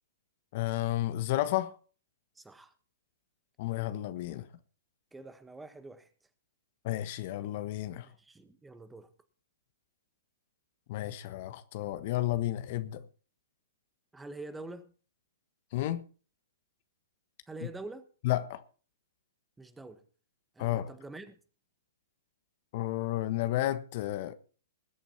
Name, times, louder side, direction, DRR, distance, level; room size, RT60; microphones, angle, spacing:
voice 1, 0.5-1.8 3.6-4.5 6.8-8.1 10.9-13.0 15.7-16.0 18.2-18.6 20.6-20.9 22.7-24.3, left 14 dB, 50° left, 1.3 m, -32 dB
voice 2, 2.3-2.7 5.1-6.1 8.0-9.1 14.1-14.9 17.5-18.1 19.6-20.0 20.5-21.4, right 2 dB, 10° right, 1.4 m, -46 dB
20.5 x 8.7 x 4.2 m
figure-of-eight pair, 115°, 0 cm